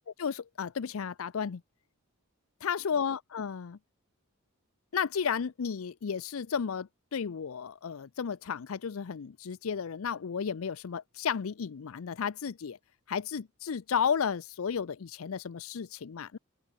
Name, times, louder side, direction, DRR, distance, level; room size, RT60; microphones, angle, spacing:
voice 1, 0.2-1.6 2.6-3.8 4.9-12.8 13.1-16.4, left 7 dB, 70° left, 0.5 m, -33 dB
open air
head